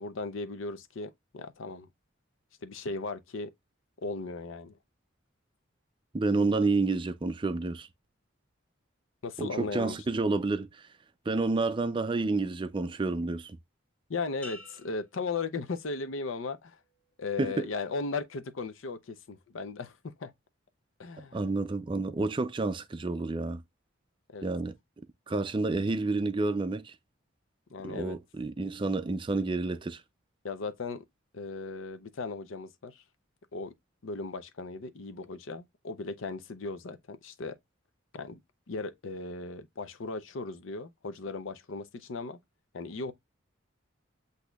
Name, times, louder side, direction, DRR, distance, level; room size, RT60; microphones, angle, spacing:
voice 1, 0.0-1.9 2.6-3.5 4.0-4.8 9.2-10.0 14.1-16.8 17.2-20.3 21.0-21.4 24.3-24.5 27.7-28.2 30.4-31.0 31.3-33.0 33.5-33.7 34.0-37.6 38.1-38.4 38.7-42.4 42.7-43.1, left 3 dB, 75° left, 0.6 m, -37 dB
voice 2, 6.1-7.9 9.4-10.9 11.3-13.6 17.4-17.7 21.3-23.6 24.4-24.7 25.3-26.9 27.8-30.0, right 3 dB, 25° right, 0.3 m, -29 dB
sound 1, 14.4-16.2 16.7-17.1, left 1 dB, 5° left, 1.1 m, -51 dB
8.0 x 2.7 x 2.3 m
head